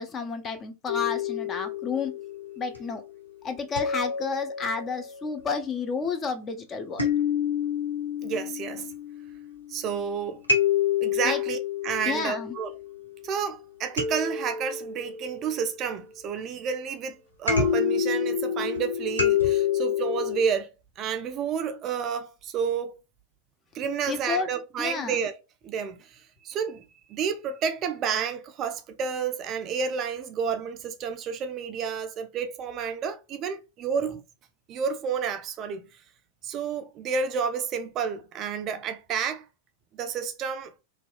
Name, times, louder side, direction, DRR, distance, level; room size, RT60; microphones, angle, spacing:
voice 1, 0.0-2.1 2.6-3.0 3.4-7.1 11.2-11.4 12.0-12.5 24.1-24.5 24.8-25.2, left 5 dB, 25° left, 0.5 m, -31 dB
sound 1, 0.9-2.9 3.8-5.3 7.0-9.9 10.5-13.1 14.0-16.2 17.5-20.4, left 7 dB, 85° left, 0.7 m, -28 dB
voice 2, 8.2-8.9 9.7-10.4 11.0-12.8 13.2-20.7 21.0-23.0 23.7-25.4 25.6-26.8 27.1-34.2 34.7-35.8 36.4-39.4 39.9-40.7, right 6 dB, 35° right, 0.4 m, -30 dB
2.7 x 2.2 x 2.4 m
figure-of-eight pair, 90°, 0 cm